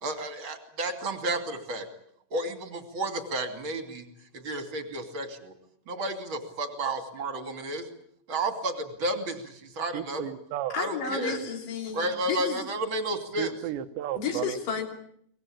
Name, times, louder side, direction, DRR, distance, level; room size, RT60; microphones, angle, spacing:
voice 1, 0.0-1.9 2.3-4.0 4.4-5.5 5.9-7.8 8.3-10.2 10.8-11.4 11.9-13.5, right 2 dB, 35° right, 6 dB, 2.9 m, -32 dB
voice 2, 9.9-10.8 13.4-14.6, right 12 dB, 85° right, 10 dB, 3.4 m, -33 dB
voice 3, 10.7-12.6 14.2-14.9, left 5 dB, 55° left, 4 dB, 4.6 m, -32 dB
24.0 x 20.0 x 8.8 m, 0.68 s
omnidirectional pair, 5.0 m